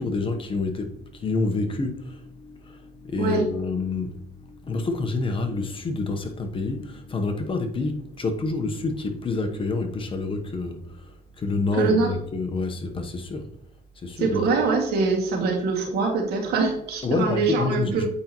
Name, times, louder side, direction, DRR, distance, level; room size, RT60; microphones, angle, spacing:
voice 1, 0.0-13.5 14.0-14.5 17.0-18.1, left 3 dB, 30° left, 0.9 m, -28 dB
voice 2, 11.7-12.1 14.2-18.1, right 4 dB, 75° right, 2.0 m, -23 dB
8.3 x 5.2 x 3.0 m
cardioid pair, 110°, 17 cm